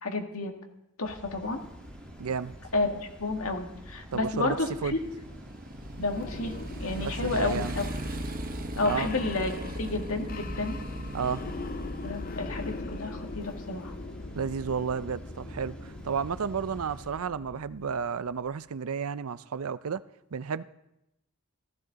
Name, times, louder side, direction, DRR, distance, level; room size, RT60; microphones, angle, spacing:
voice 1, 0.0-0.5 1.0-1.6 2.7-5.0 6.0-7.8 8.8-10.8 12.0-13.9, left 2 dB, 75° left, 1.9 m, -31 dB
sound 1, 1.0-17.1, equal, 5° left, 2.4 m, -49 dB
Motorcycle, 1.4-17.2, right 1 dB, 40° right, 1.0 m, -41 dB
voice 2, 2.2-2.5 4.1-4.6 4.8-5.0 7.0-7.8 8.8-9.1 11.1-11.5 14.4-20.0 20.3-20.6, right 6 dB, 80° right, 0.5 m, -32 dB
sound 2, 5.7-18.5, left 3 dB, 40° left, 0.6 m, -41 dB
15.5 x 15.0 x 4.0 m
head